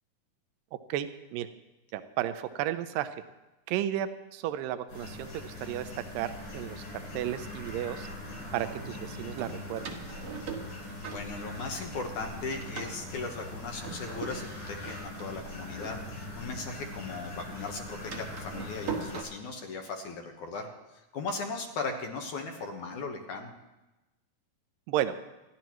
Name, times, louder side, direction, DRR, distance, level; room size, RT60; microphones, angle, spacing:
voice 1, 0.9-1.5 1.9-3.2 3.7-5.9 6.1-8.1 8.5-9.8 24.9-25.1, right 12 dB, 80° right, 11 dB, 2.3 m, -33 dB
sound 1, 4.9-19.2, left 2 dB, 90° left, 7.1 m, -42 dB
Door, 7.0-8.2 9.4-11.9 12.2-16.7 17.0-19.2, right 6 dB, 55° right, 1.6 m, -42 dB
voice 2, 10.9-23.6, left 3 dB, 65° left, 2 dB, 2.5 m, -38 dB
27.5 x 11.5 x 3.1 m, 1.0 s
omnidirectional pair, 4.1 m